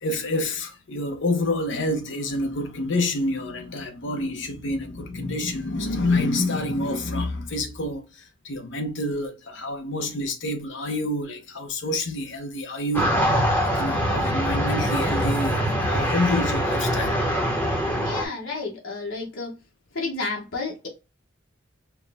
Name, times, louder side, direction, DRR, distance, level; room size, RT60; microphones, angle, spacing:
voice 1, 0.0-13.4 13.8-17.2, left 2 dB, 60° left, 0.8 m, -28 dB
sound 1, 12.9-18.2, equal, 10° left, 0.9 m, -23 dB
voice 2, 18.0-19.5 19.9-20.9, left 3 dB, 75° left, 1.2 m, -31 dB
4.6 x 2.2 x 3.4 m
head